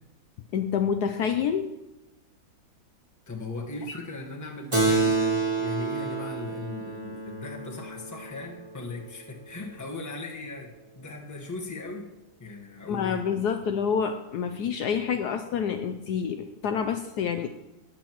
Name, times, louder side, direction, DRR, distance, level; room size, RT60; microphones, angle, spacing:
voice 1, 0.5-1.7 3.9-4.0 12.9-17.5, left 7 dB, 70° left, 7 dB, 1.0 m, -28 dB
voice 2, 3.3-12.1 12.4-13.2, left 2 dB, 10° left, 0 dB, 1.0 m, -38 dB
Keyboard (musical), 4.7-9.6, right 3 dB, 20° right, 1.1 m, -29 dB
19.5 x 7.8 x 3.0 m, 0.96 s
omnidirectional pair, 2.1 m